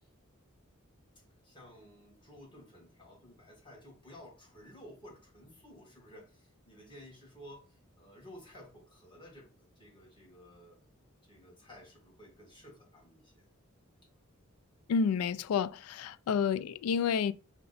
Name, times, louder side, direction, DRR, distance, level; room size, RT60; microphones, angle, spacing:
voice 1, 1.4-10.8 11.3-13.4, equal, 25° left, 1.5 m, -54 dB
voice 2, 14.9-17.3, left 6 dB, 90° left, 0.3 m, -30 dB
5.7 x 2.2 x 4.0 m
head